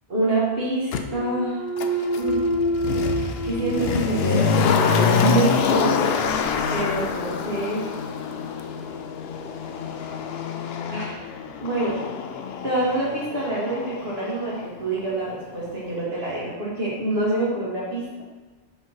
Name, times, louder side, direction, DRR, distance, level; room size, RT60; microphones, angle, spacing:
voice 1, 0.1-1.6 2.1-2.4 3.4-6.1 6.7-7.9 10.9-11.1 11.6-12.0 12.6-18.2, right 2 dB, 65° right, -6 dB, 2.3 m, -26 dB
Motor vehicle (road), 0.9-1.0 1.8-14.7 15.0-15.1, left 6 dB, 70° left, 0.8 m, -26 dB
Thump thud, 1.0-5.0 5.5-10.2, right 1 dB, 25° right, 0.4 m, -30 dB
5.4 x 4.4 x 5.4 m, 1.3 s
omnidirectional pair, 1.1 m